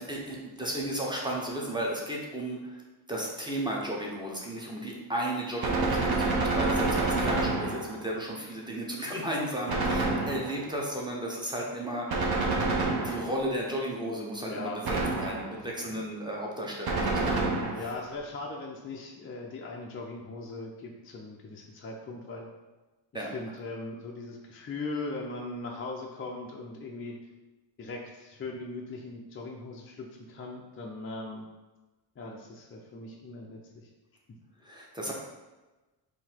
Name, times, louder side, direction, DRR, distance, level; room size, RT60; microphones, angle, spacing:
voice 1, 0.0-2.8 3.1-12.2 13.0-17.5 23.1-23.3 34.6-35.1, right 1 dB, 10° right, -3 dB, 0.6 m, -34 dB
Gunshot gunfire, 5.6-8.1 9.7-10.7 12.1-13.5 14.8-15.7 16.9-18.0, right 3 dB, 55° right, 0.8 m, -28 dB
voice 2, 14.5-14.8 17.7-22.5 23.1-27.2 27.8-31.5 32.2-33.9, left 3 dB, 30° left, -1 dB, 0.4 m, -39 dB
3.8 x 2.7 x 4.3 m, 1.2 s
wide cardioid pair, 160°, 46 cm